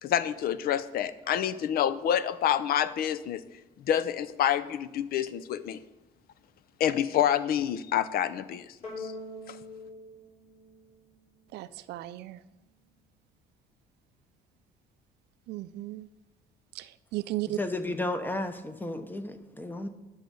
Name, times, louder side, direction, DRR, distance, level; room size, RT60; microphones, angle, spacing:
voice 1, 0.0-3.4 3.9-5.8 6.8-9.1 9.5-9.6, left 10 dB, 65° left, 15 dB, 0.6 m, -28 dB
sound 1, 8.8-11.4, left 2 dB, 45° left, 3.1 m, -43 dB
voice 2, 11.5-12.4 15.5-16.1 16.8-16.9 17.1-17.6, right 16 dB, 80° right, 14 dB, 0.5 m, -35 dB
voice 3, 17.6-19.9, left 2 dB, 10° left, 9 dB, 0.9 m, -33 dB
11.0 x 6.3 x 5.3 m, 1.0 s
cardioid pair, 110°, 17 cm